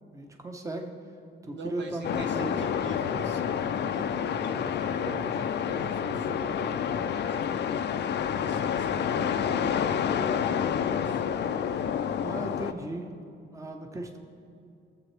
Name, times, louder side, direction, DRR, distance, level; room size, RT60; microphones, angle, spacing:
voice 1, 0.1-0.9 1.4-2.7 9.1-9.9 12.2-13.1 13.5-14.2, right 1 dB, 15° right, 3 dB, 1.0 m, -37 dB
voice 2, 1.5-7.4 8.3-11.2, right 3 dB, 65° right, 3 dB, 1.2 m, -43 dB
sound 1, 2.0-12.7, left 8 dB, 60° left, 0.5 m, -29 dB
18.0 x 7.4 x 3.4 m, 2.5 s
cardioid pair, 90°, 20 cm